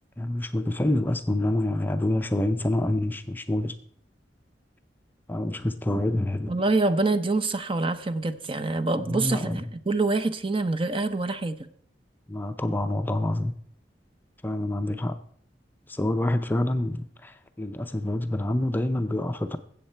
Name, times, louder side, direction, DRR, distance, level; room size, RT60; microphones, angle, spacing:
voice 1, 0.2-3.8 5.3-6.5 8.9-9.8 12.3-13.5 14.4-15.2 15.9-19.6, left 1 dB, 10° left, 0.5 m, -27 dB
voice 2, 6.5-11.5, right 3 dB, 30° right, 0.6 m, -26 dB
14.0 x 8.0 x 4.4 m
head